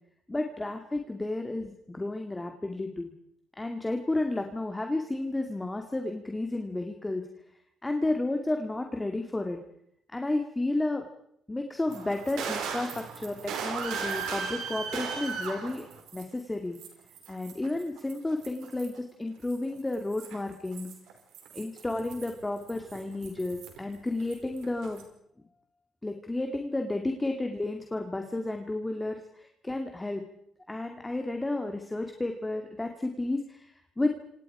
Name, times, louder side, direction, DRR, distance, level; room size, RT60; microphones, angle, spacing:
voice 1, 0.3-3.1 3.6-7.2 7.8-9.6 10.1-11.0 11.5-15.9 16.1-16.8 17.3-20.9 21.5-25.0 26.0-30.2 30.7-34.1, left 2 dB, 15° left, 4 dB, 2.2 m, -32 dB
sound 1, 11.9-16.4 16.7-19.0 19.4-23.9 24.2-25.0, right 6 dB, 90° right, 5.0 m, -37 dB
29.5 x 26.5 x 4.9 m, 0.72 s
cardioid pair, 90°, 0 cm